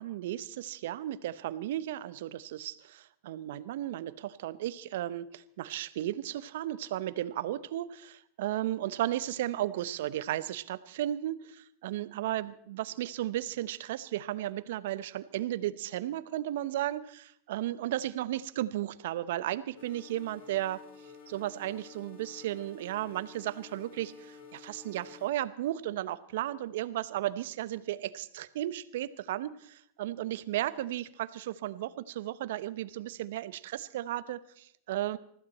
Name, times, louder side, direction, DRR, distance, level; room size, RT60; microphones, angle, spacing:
voice 1, 0.0-20.8 21.3-35.2, right 13 dB, 70° right, 16 dB, 0.9 m, -34 dB
sound 1, 19.8-25.3, left 5 dB, 65° left, 3.7 m, -51 dB
20.5 x 15.0 x 4.3 m, 0.68 s
hypercardioid pair, 105°, 0 cm